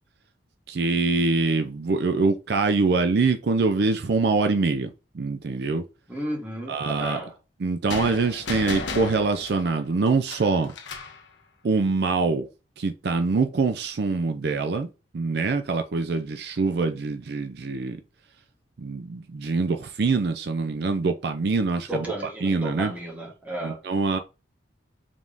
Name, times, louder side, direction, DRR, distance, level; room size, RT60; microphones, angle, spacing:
voice 1, 0.7-5.8 6.7-7.2 7.6-10.7 11.6-12.5 12.8-14.9 15.1-18.0 18.8-22.9 23.6-24.2, right 3 dB, 55° right, 0.4 m, -24 dB
voice 2, 6.1-7.3 21.9-23.8, right 1 dB, 10° right, 1.5 m, -33 dB
sound 1, 7.9-11.2, left 3 dB, 75° left, 1.0 m, -34 dB
5.1 x 3.5 x 2.6 m
head